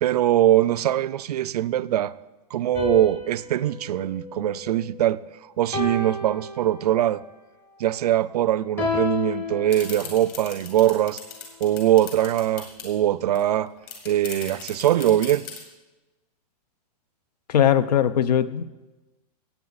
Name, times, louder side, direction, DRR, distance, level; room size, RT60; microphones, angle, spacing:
voice 1, 0.0-2.1 2.5-5.2 5.6-7.2 7.8-11.2 11.6-13.7 14.0-15.4, right 12 dB, 75° right, 0.5 m, -22 dB
sound 1, 2.7-5.2 5.7-7.2 8.8-10.5, left 3 dB, 10° left, 0.8 m, -31 dB
sound 2, 9.7-12.9 13.3-13.4 13.7-15.6, left 8 dB, 35° left, 2.3 m, -38 dB
voice 2, 17.5-18.6, left 9 dB, 80° left, 0.7 m, -20 dB
16.5 x 8.3 x 4.0 m
supercardioid pair, 175°, 20 cm